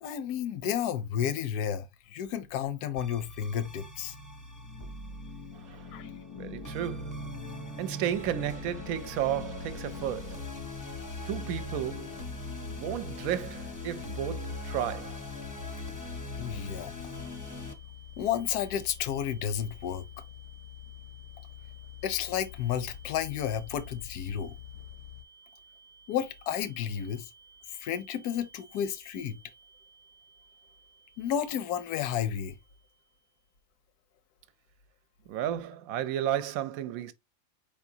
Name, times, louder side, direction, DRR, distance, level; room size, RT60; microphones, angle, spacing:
voice 1, 0.0-4.2 5.9-6.1 16.4-16.9 18.2-20.1 22.0-24.5 26.1-27.3 27.8-29.4 31.2-32.5, left 9 dB, 85° left, 1.2 m, -32 dB
sound 1, 3.0-17.7, left 2 dB, 20° left, 0.5 m, -41 dB
voice 2, 5.6-5.9 6.3-7.2 7.8-10.5 11.3-12.2 12.7-15.2 35.3-37.1, right 11 dB, 70° right, 1.0 m, -33 dB
sound 2, 8.1-25.2, left 13 dB, 65° left, 0.7 m, -47 dB
sound 3, 17.1-33.5, right 4 dB, 40° right, 0.3 m, -58 dB
4.7 x 3.6 x 2.6 m
omnidirectional pair, 1.6 m